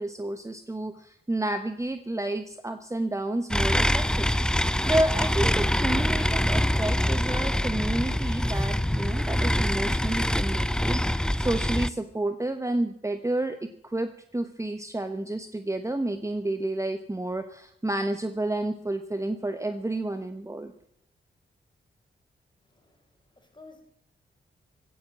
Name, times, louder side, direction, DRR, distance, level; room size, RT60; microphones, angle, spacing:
voice 1, 0.0-20.7, right 1 dB, 15° right, 8 dB, 1.2 m, -30 dB
sound 1, 3.5-11.9, left 1 dB, 5° left, 0.6 m, -25 dB
voice 2, 22.6-23.8, left 3 dB, 20° left, 4 dB, 4.9 m, -53 dB
16.5 x 10.0 x 7.5 m, 0.74 s
supercardioid pair, 50°, 21 cm